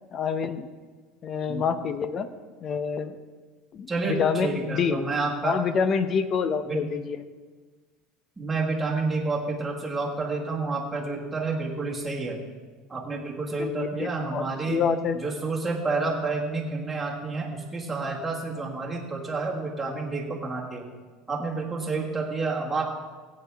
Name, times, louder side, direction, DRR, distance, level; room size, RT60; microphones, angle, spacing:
voice 1, 0.1-0.7 1.2-2.3 2.6-3.2 3.7-5.0 5.4-7.2 13.6-15.2, left 6 dB, 30° left, 11 dB, 0.7 m, -27 dB
voice 2, 3.9-5.6 6.7-6.9 8.4-12.4 12.9-14.8 15.1-20.9 21.3-22.9, right 3 dB, 10° right, -4 dB, 1.7 m, -29 dB
16.5 x 8.7 x 3.5 m, 1.4 s
cardioid pair, 155°, 0 cm